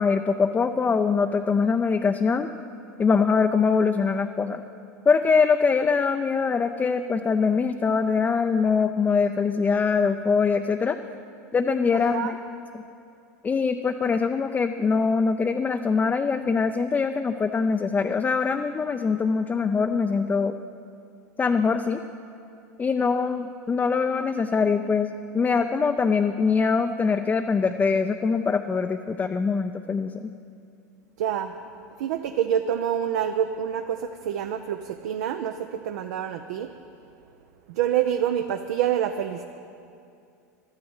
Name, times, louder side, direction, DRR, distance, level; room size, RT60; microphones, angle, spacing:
voice 1, 0.0-2.5 3.0-4.6 5.1-11.0 11.5-12.3 12.7-12.8 13.4-20.6 21.4-22.0 22.8-30.3, left 5 dB, 20° left, 6 dB, 0.5 m, -23 dB
voice 2, 11.9-12.3 31.2-31.5 32.0-36.7 37.7-39.4, right 9 dB, 65° right, 6 dB, 0.6 m, -27 dB
12.0 x 9.7 x 7.9 m, 2.5 s
hypercardioid pair, 90°, 9 cm